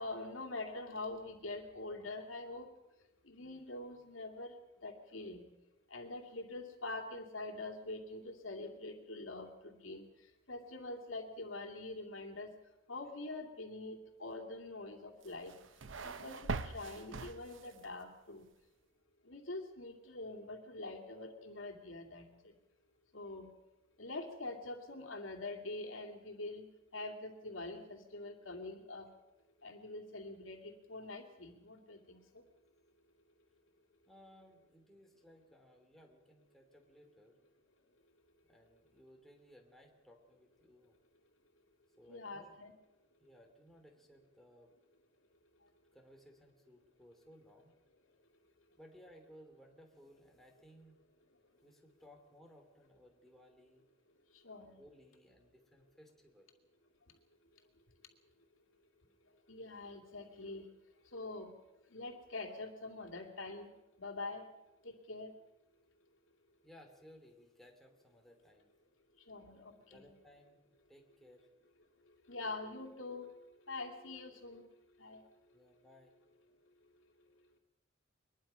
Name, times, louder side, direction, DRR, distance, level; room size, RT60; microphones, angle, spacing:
voice 1, 0.0-2.7 3.2-4.6 4.8-5.5 5.9-10.0 10.5-12.5 12.9-15.6 16.0-18.5 19.2-22.5 23.1-23.5 24.0-26.7 26.9-29.1 29.6-32.4 42.1-42.7 54.3-54.8 59.5-60.7 61.1-61.5 61.9-63.7 64.0-64.5 64.8-65.3 69.3-70.1 72.3-73.3 73.7-74.7 75.0-75.2, left 2 dB, 75° left, 4 dB, 2.7 m, -45 dB
sound 1, 15.2-17.9, right 3 dB, 70° right, 0.9 m, -42 dB
voice 2, 34.1-37.4 38.5-41.0 42.0-42.5 43.2-44.7 45.9-47.7 48.8-51.0 51.6-53.8 54.5-56.5 66.6-68.7 69.8-70.6 70.9-71.5 75.5-76.1, equal, ahead, 1 dB, 2.9 m, -61 dB
23.0 x 21.0 x 5.7 m, 0.99 s
head